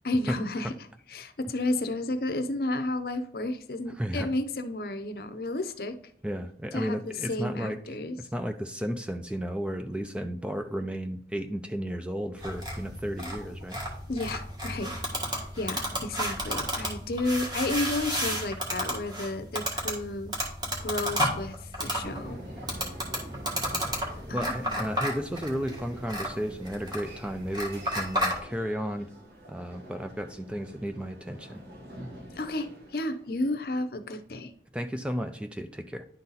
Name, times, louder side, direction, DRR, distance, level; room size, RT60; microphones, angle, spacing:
voice 1, 0.0-0.7 1.1-6.0 6.7-8.2 14.1-20.3 20.8-22.4 24.3-24.8 32.4-34.5, left 2 dB, 55° left, 10 dB, 0.7 m, -32 dB
voice 2, 4.0-4.3 6.2-7.8 8.2-13.8 24.3-29.1 29.5-31.6 34.7-36.0, equal, 5° right, 7 dB, 0.4 m, -33 dB
sound 1, 12.4-28.4, equal, 25° right, 1.6 m, -32 dB
sound 2, 22.0-33.3, equal, 55° right, 1.8 m, -46 dB
10.5 x 4.0 x 4.1 m, 0.62 s
head